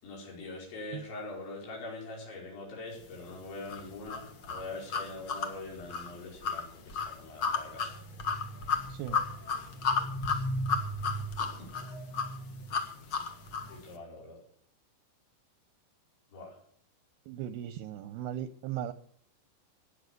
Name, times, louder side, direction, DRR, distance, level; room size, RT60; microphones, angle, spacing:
voice 1, 0.0-8.0 11.4-11.7 13.2-13.4 13.7-14.4 16.3-16.6, left 2 dB, 90° left, -2 dB, 7.4 m, -43 dB
sound 1, 3.7-13.8, left 4 dB, 65° left, 1.2 m, -33 dB
voice 2, 8.9-9.2 17.3-18.9, right 11 dB, 80° right, 12 dB, 2.5 m, -37 dB
18.5 x 8.0 x 6.6 m, 0.63 s
omnidirectional pair, 5.1 m